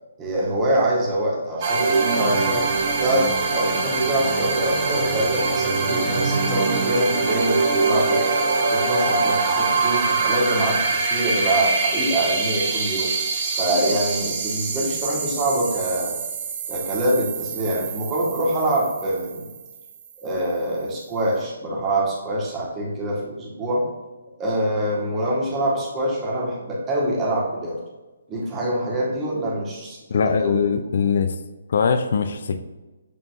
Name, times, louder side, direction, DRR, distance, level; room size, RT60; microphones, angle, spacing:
voice 1, 0.2-2.7 3.0-8.2 8.7-13.1 13.6-16.2 16.7-19.5 20.2-23.8 24.4-27.8 28.3-30.6, right 1 dB, 15° right, -4 dB, 1.6 m, -25 dB
sound 1, 1.6-20.1, right 4 dB, 35° right, 0.8 m, -24 dB
voice 2, 30.1-31.3 31.7-32.6, left 6 dB, 50° left, 9 dB, 0.4 m, -21 dB
8.2 x 4.5 x 2.6 m, 1.2 s
figure-of-eight pair, 135°, 0 cm